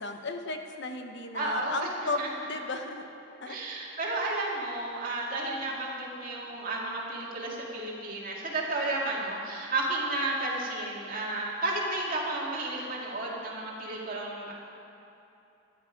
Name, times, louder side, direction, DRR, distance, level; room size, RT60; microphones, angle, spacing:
voice 1, 0.0-2.2 2.5-3.0 3.4-3.6, left 3 dB, 60° left, 5 dB, 0.8 m, -34 dB
voice 2, 1.3-1.9 2.2-2.3 3.5-14.5, right 2 dB, 45° right, -3 dB, 2.2 m, -32 dB
13.0 x 10.5 x 5.1 m, 2.9 s
head